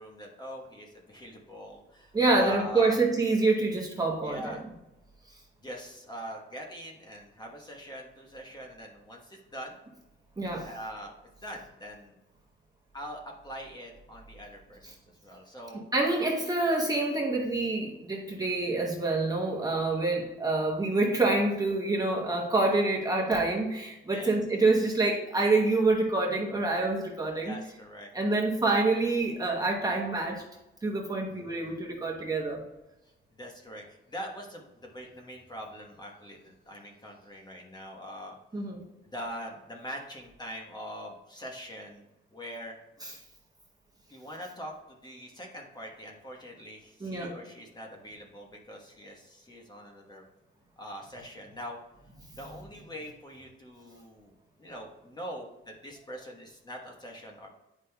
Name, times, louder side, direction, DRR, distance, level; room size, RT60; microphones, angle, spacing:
voice 1, 0.0-3.0 4.2-4.6 5.6-9.8 10.6-11.2 11.4-12.1 12.9-14.9 15.2-15.9 24.1-24.4 27.4-28.1 31.4-31.7 33.3-38.4 39.0-42.0 42.3-42.8 44.1-50.2 50.8-51.8 52.3-54.3 54.6-57.5, equal, 20° left, 1 dB, 1.2 m, -43 dB
voice 2, 2.1-4.5 10.4-10.7 15.9-27.6 28.1-30.4 30.8-32.6 38.5-38.8 43.0-43.1 47.0-47.3, right 2 dB, 15° right, -1 dB, 0.9 m, -27 dB
9.5 x 5.1 x 2.3 m, 0.98 s
cardioid pair, 145°, 21 cm